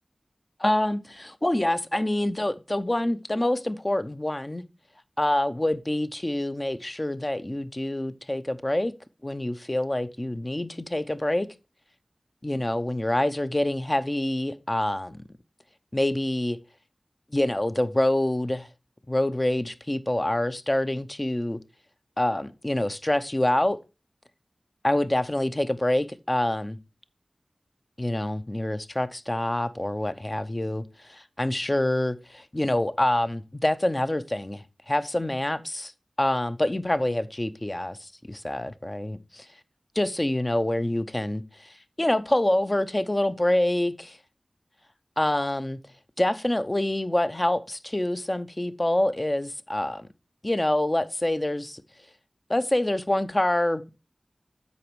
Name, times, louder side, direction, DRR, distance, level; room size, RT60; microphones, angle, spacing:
voice 1, 0.6-4.6 5.2-8.9 9.2-11.5 12.4-15.2 15.9-16.6 17.3-18.7 19.1-21.6 22.2-23.8 24.8-26.8 28.0-35.9 36.2-39.5 40.0-44.2 45.2-45.8 46.2-50.1 50.4-51.8 52.5-53.8, left 1 dB, 30° left, 0.7 m, -26 dB
8.4 x 5.1 x 4.6 m
wide cardioid pair, 50°, 0 cm